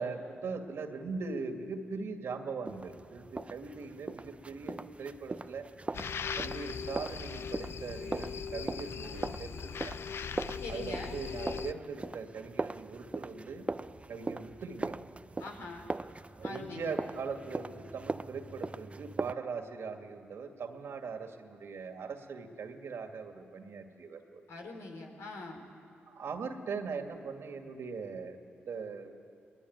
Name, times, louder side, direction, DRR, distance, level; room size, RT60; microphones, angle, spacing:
voice 1, 0.0-5.7 6.4-10.0 10.7-13.7 14.1-15.0 16.4-24.4 26.1-28.4 28.7-29.2, right 4 dB, 70° right, 5 dB, 2.3 m, -40 dB
sound 1, 2.7-19.3, right 3 dB, 25° right, 0.7 m, -40 dB
sound 2, 5.9-11.7, left 7 dB, 65° left, 0.6 m, -39 dB
voice 2, 10.6-11.2 15.4-15.9 16.4-17.0 24.5-25.6, left 3 dB, 85° left, 2 dB, 3.9 m, -43 dB
22.0 x 21.0 x 9.6 m, 2.8 s
supercardioid pair, 50°, 5 cm